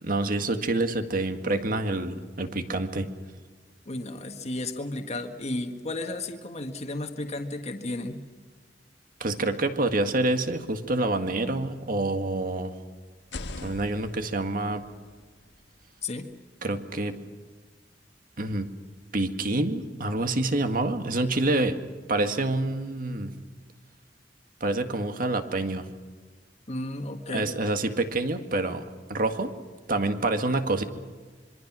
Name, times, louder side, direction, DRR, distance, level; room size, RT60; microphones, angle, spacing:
voice 1, 0.0-3.1 9.2-12.7 13.6-14.8 16.6-17.2 18.4-18.7 19.1-21.8 22.1-23.3 24.6-25.9 27.3-28.8 29.1-29.5 29.9-30.8, right 2 dB, 55° right, 7 dB, 1.9 m, -27 dB
voice 2, 3.9-8.2 16.0-16.3 26.7-27.5, left 2 dB, 40° left, 4 dB, 1.7 m, -33 dB
sound 1, 13.2-17.0, left 2 dB, 70° left, 1.4 m, -44 dB
26.0 x 23.5 x 6.2 m, 1.5 s
head